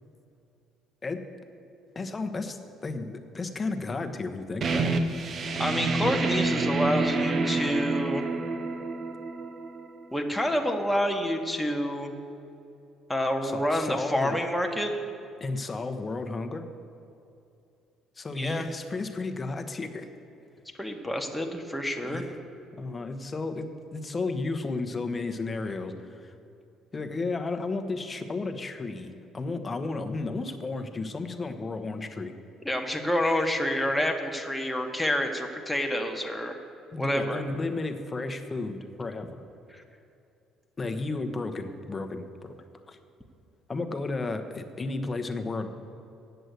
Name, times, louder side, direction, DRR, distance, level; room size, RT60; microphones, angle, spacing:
voice 1, 1.9-5.0 13.4-14.4 15.4-16.6 18.2-20.1 22.0-22.3 22.7-26.3 26.9-32.3 36.9-39.4 40.8-42.5 42.9-43.0 43.7-45.7, left 3 dB, 30° left, 7 dB, 1.1 m, -33 dB
sound 1, 4.6-10.1, right 3 dB, 50° right, 0.9 m, -28 dB
voice 2, 5.6-8.3 10.1-12.1 13.1-14.9 18.3-18.7 20.8-22.2 32.6-36.6 37.0-37.4 39.7-39.8, equal, 5° left, 2 dB, 1.3 m, -28 dB
8.0 x 7.7 x 8.1 m, 2.7 s
hypercardioid pair, 55°, 0 cm